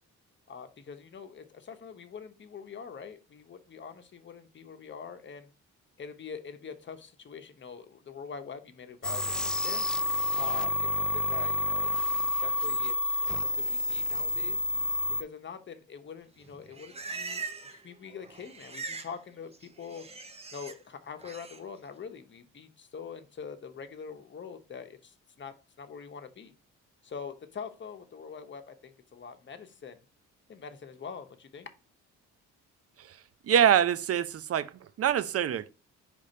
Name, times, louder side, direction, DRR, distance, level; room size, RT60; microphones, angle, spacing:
voice 1, 0.5-5.5 6.0-9.8 10.3-14.6 15.2-20.1 20.5-26.5 27.0-30.0 30.5-31.7, left 6 dB, 40° left, 1.0 m, -44 dB
sound 1, 9.0-15.2, left 1 dB, 5° left, 0.5 m, -29 dB
Livestock farm animals working animals, 16.4-17.8 18.1-19.1 19.4-20.7 21.2-21.6, right 4 dB, 20° right, 0.8 m, -41 dB
voice 2, 33.4-34.7 35.0-35.7, right 9 dB, 50° right, 0.6 m, -24 dB
4.9 x 3.5 x 5.5 m
cardioid pair, 90°, 30 cm